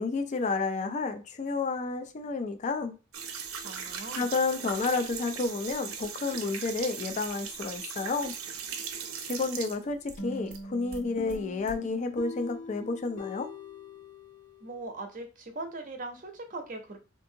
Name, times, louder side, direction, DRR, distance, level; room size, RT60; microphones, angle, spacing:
voice 1, 0.0-3.0 4.2-8.3 9.3-13.5, left 3 dB, 35° left, 0.3 m, -31 dB
sound 1, 3.1-10.6 10.9-11.8, right 6 dB, 85° right, 0.6 m, -39 dB
voice 2, 3.6-4.3 14.6-17.0, right 2 dB, 40° right, 0.7 m, -40 dB
sound 2, 10.2-14.9, left 3 dB, 70° left, 1.2 m, -43 dB
3.5 x 2.5 x 2.7 m
head